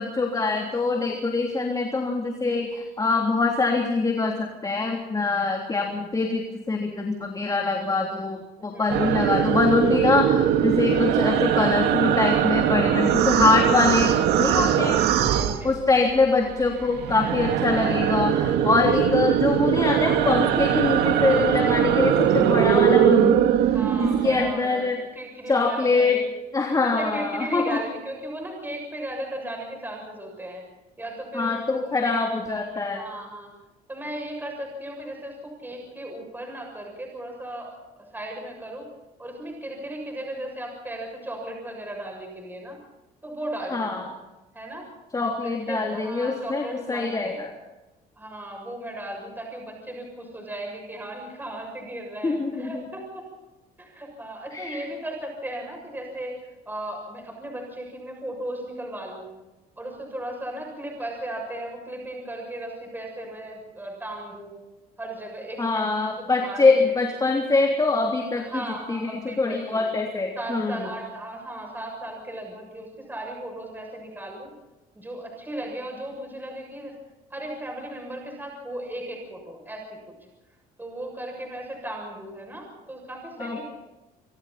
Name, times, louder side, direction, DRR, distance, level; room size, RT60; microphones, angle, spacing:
voice 1, 0.0-15.0 15.6-23.4 24.0-25.0 25.5-26.2 26.5-27.8 31.3-33.0 43.7-44.0 45.1-47.5 52.2-52.8 54.5-54.8 65.6-68.5 68.9-70.9 83.4-83.6, left 3 dB, 20° left, 1 dB, 3.3 m, -24 dB
sound 1, 8.9-16.2 16.5-24.5, right 9 dB, 80° right, 1.9 m, -21 dB
voice 2, 14.7-16.0 16.4-17.0 23.7-26.3 26.8-30.6 31.0-32.0 32.5-33.5 33.9-38.9 39.2-42.8 43.2-44.0 44.5-44.9 45.7-47.4 48.2-53.3 53.8-59.3 59.8-64.6 65.0-66.9 68.3-69.8 70.4-74.5 74.9-77.0 77.3-80.1 80.8-83.6, right 1 dB, 10° right, 1 dB, 7.1 m, -36 dB
26.0 x 25.0 x 4.3 m, 1.0 s
cardioid pair, 110°, 17 cm